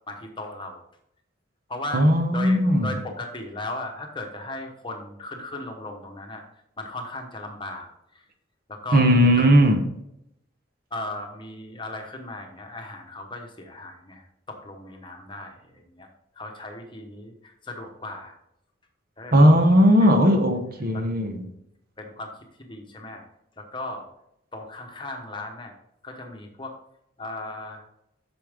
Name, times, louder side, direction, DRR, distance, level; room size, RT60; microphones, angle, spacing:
voice 1, 0.1-0.8 1.7-2.0 2.3-6.4 6.8-7.9 8.1-8.2 8.7-9.1 9.3-9.5 10.9-16.1 16.4-18.3 19.2-19.4 20.0-20.3 20.9-21.1 22.0-22.3 22.7-23.2 23.6-24.1 24.5-25.7 26.0-26.7 27.2-27.8, left 2 dB, 25° left, 1.0 m, -36 dB
voice 2, 1.9-3.0 8.9-9.8 19.3-21.5, equal, 50° right, 0.9 m, -17 dB
8.5 x 6.2 x 3.6 m
head